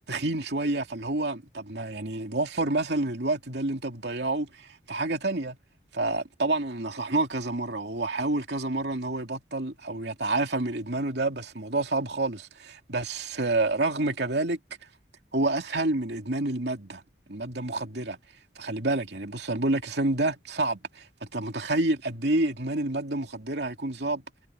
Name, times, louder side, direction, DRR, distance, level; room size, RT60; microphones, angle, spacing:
voice 1, 0.1-5.6 5.9-14.6 15.3-17.0 17.3-18.2 18.6-24.2, right 2 dB, 65° right, 2.7 m, -28 dB
head